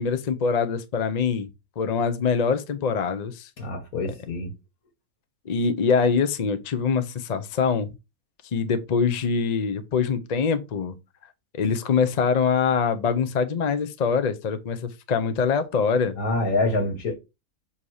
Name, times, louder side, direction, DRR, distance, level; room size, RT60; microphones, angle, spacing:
voice 1, 0.0-1.5 1.8-3.5 5.5-7.9 8.5-10.9 11.5-16.2, left 5 dB, 45° left, 0.5 m, -24 dB
voice 2, 3.6-4.5 16.2-17.1, left 2 dB, 70° left, 2.0 m, -26 dB
7.3 x 2.8 x 4.7 m
omnidirectional pair, 1.6 m